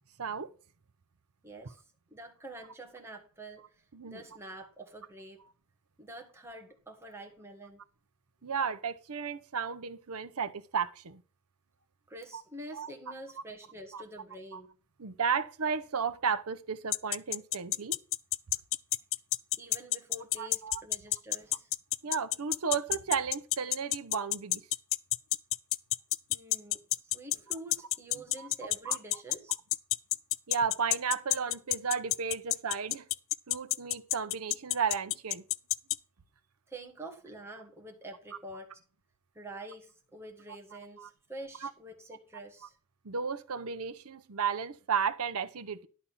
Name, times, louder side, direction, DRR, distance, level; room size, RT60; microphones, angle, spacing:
voice 1, 0.2-0.5 3.9-4.2 8.4-11.2 12.3-12.4 12.7-12.9 13.9-14.0 14.5-14.6 15.0-17.9 20.4-20.8 22.0-24.6 28.4-28.5 28.9-29.0 30.5-33.1 33.5-35.4 41.0-41.1 41.6-41.7 43.0-45.9, right 6 dB, 75° right, 0.8 m, -33 dB
voice 2, 1.4-1.8 2.1-5.4 6.0-7.8 8.4-8.5 12.1-14.7 19.6-21.7 26.3-29.6 36.7-38.8 39.3-42.8, right 1 dB, 10° right, 1.8 m, -47 dB
sound 1, 16.9-36.0, left 18 dB, 60° left, 0.4 m, -28 dB
11.5 x 4.2 x 7.1 m
head